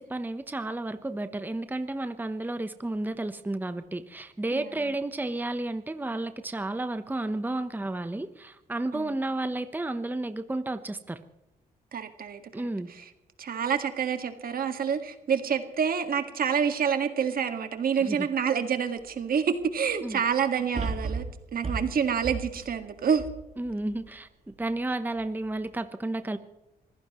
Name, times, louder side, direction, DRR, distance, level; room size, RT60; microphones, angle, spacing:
voice 1, 0.0-11.2 12.5-12.9 18.0-18.3 20.0-20.2 23.6-26.4, right 2 dB, 10° right, 10 dB, 0.9 m, -32 dB
voice 2, 4.5-4.9 8.9-9.2 11.9-13.1 13.4-21.3 21.5-23.3, right 7 dB, 60° right, 8 dB, 1.8 m, -28 dB
sound 1, 19.0-19.1 20.7-24.1 24.6-24.7, right 3 dB, 40° right, 3.4 m, -34 dB
25.5 x 15.5 x 3.1 m, 0.95 s
cardioid pair, 75°, 17 cm